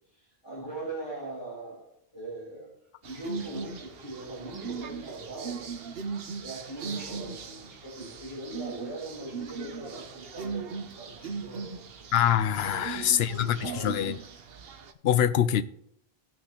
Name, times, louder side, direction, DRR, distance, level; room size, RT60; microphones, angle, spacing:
voice 1, 0.1-1.9 2.1-2.7 3.0-5.6 6.4-11.8 12.6-14.1, right 2 dB, 25° left, 3.6 m, -40 dB
sound 1, 3.0-14.9, right 5 dB, 70° right, 1.0 m, -39 dB
voice 2, 12.1-14.2 15.0-15.6, left 10 dB, 75° left, 0.8 m, -24 dB
18.0 x 6.1 x 2.9 m
omnidirectional pair, 1.1 m